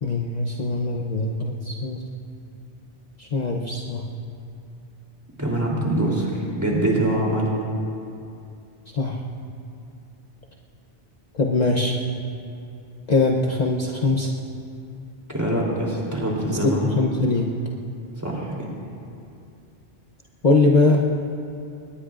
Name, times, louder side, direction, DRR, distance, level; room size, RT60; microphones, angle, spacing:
voice 1, 0.0-2.0 3.2-4.0 8.9-9.2 11.3-12.0 13.1-14.3 16.6-17.5 20.4-21.1, left 3 dB, 40° left, -1 dB, 0.9 m, -22 dB
voice 2, 5.4-7.5 15.3-16.8 18.2-18.7, right 1 dB, 15° right, -4 dB, 3.2 m, -24 dB
23.0 x 20.0 x 2.5 m, 2.6 s
omnidirectional pair, 1.1 m